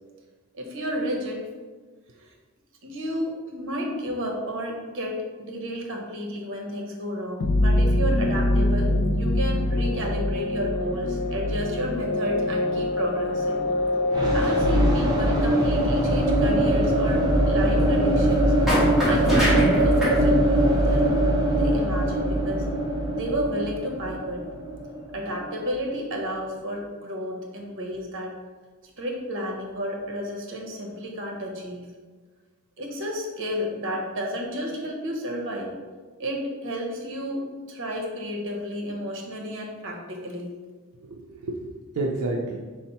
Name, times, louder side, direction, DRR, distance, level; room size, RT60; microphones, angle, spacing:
voice 1, 0.5-1.4 2.2-2.3 2.8-13.7 14.3-18.5 19.0-21.2 21.5-22.7 23.1-24.4 25.1-28.4 29.0-31.9 32.8-35.7 36.2-40.5, equal, 60° right, 0 dB, 0.8 m, -32 dB
sound 1, 7.4-16.0, left 1 dB, 50° left, 0.3 m, -24 dB
sound 2, 14.1-25.9, right 1 dB, 20° right, 0.6 m, -22 dB
sound 3, 18.7-20.2, left 1 dB, ahead, 1.0 m, -23 dB
voice 2, 40.9-42.6, right 2 dB, 90° right, -1 dB, 0.5 m, -30 dB
4.0 x 2.1 x 4.1 m, 1.4 s
head